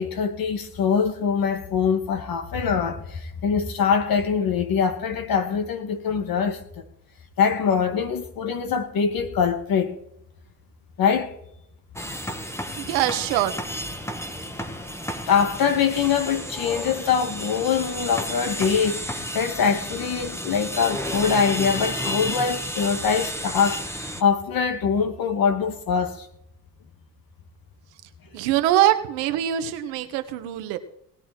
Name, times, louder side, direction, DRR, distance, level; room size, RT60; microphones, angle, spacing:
voice 1, 0.0-6.6 7.4-10.0 11.0-11.3 15.3-26.3, left 6 dB, 60° left, 2.4 m, -23 dB
sound 1, 12.0-24.2, equal, 5° left, 1.7 m, -32 dB
voice 2, 12.8-13.6 28.3-30.8, right 12 dB, 85° right, 1.5 m, -23 dB
19.0 x 10.0 x 4.5 m
supercardioid pair, 75°, 40 cm